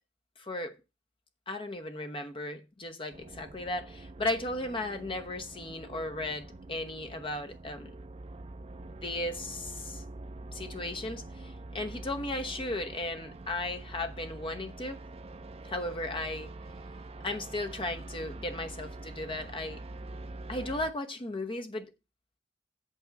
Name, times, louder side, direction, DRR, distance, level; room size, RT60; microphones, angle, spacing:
voice 1, 0.4-0.7 1.5-7.9 8.8-10.0 10.5-15.0 15.6-16.5 17.2-19.8 20.5-21.9, left 2 dB, 30° left, 1.0 m, -36 dB
sound 1, 3.1-20.9, right 2 dB, 35° right, 0.5 m, -45 dB
8.4 x 3.6 x 6.8 m
head